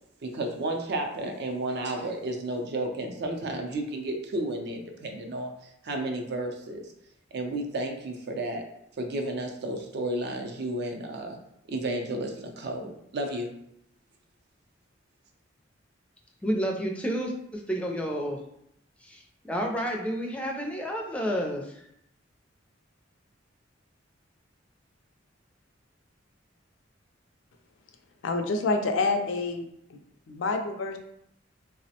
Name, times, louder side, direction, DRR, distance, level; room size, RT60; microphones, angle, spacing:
voice 1, 0.2-5.5 5.8-6.9 7.3-8.6 9.0-11.4 11.7-13.5, right 1 dB, 60° right, 3 dB, 0.4 m, -32 dB
voice 2, 16.4-18.4 19.0-21.7, equal, 5° left, 0 dB, 0.4 m, -30 dB
voice 3, 28.2-29.6 29.9-30.0 30.3-31.0, left 3 dB, 70° left, 5 dB, 0.4 m, -27 dB
3.1 x 2.0 x 2.8 m, 0.75 s
head